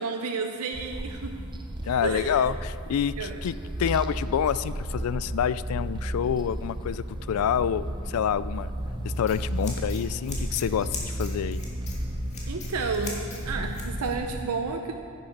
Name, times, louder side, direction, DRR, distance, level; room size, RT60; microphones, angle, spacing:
voice 1, 0.0-1.4 2.0-2.4 3.2-3.4 12.5-15.0, right 4 dB, 85° right, 4 dB, 0.6 m, -31 dB
sound 1, 0.7-14.4, right 1 dB, 20° right, 0.6 m, -34 dB
voice 2, 1.9-8.7 9.0-11.6, left 8 dB, 75° left, 16 dB, 0.3 m, -27 dB
Scissors, 8.8-14.2, left 3 dB, 30° left, 1.9 m, -40 dB
10.0 x 8.9 x 5.3 m, 2.3 s
head